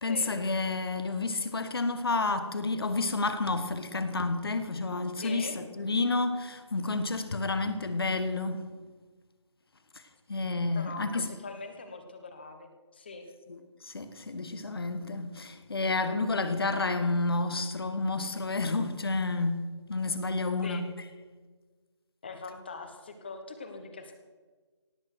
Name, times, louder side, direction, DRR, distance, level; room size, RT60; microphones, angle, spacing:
voice 1, 0.0-8.6 10.3-11.3 13.5-13.6 13.8-20.9, left 3 dB, 55° left, 1.5 m, -30 dB
voice 2, 5.2-5.6 10.4-13.3 20.6-20.9 22.2-24.2, left 4 dB, 20° left, 1.1 m, -42 dB
17.5 x 7.0 x 7.9 m
figure-of-eight pair, 175°, 15 cm